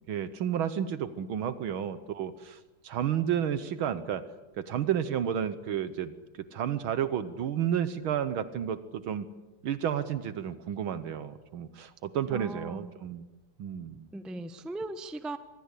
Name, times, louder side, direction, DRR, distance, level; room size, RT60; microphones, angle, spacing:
voice 1, 0.1-4.2 4.6-9.3 9.6-13.3 13.6-14.1, right 9 dB, 70° right, 13 dB, 1.8 m, -31 dB
voice 2, 12.3-12.9 14.1-15.4, right 2 dB, ahead, 11 dB, 0.5 m, -38 dB
25.0 x 21.5 x 8.3 m, 1.1 s
omnidirectional pair, 2.4 m